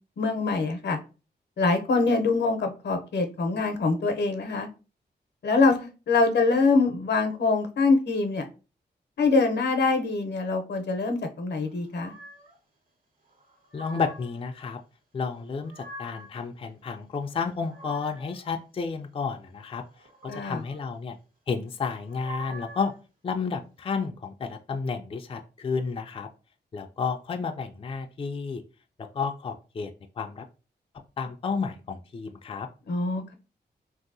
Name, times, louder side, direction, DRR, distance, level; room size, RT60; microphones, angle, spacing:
voice 1, 0.2-1.0 1.6-4.7 5.4-8.4 9.2-12.1 20.3-20.6 32.9-33.3, left 3 dB, 70° left, 6 dB, 0.7 m, -24 dB
sound 1, 11.9-12.5 13.4-14.4 15.3-16.3 17.3-18.4 19.9-20.8 21.9-23.0, right 1 dB, 50° right, 1.5 m, -44 dB
voice 2, 13.7-14.8 15.1-19.8 20.2-21.2 21.5-22.9 23.2-26.3 26.7-28.6 29.1-30.5 31.2-32.7, left 5 dB, 30° left, 5 dB, 0.4 m, -31 dB
3.1 x 2.7 x 2.6 m, 0.33 s
cardioid pair, 60°, 18 cm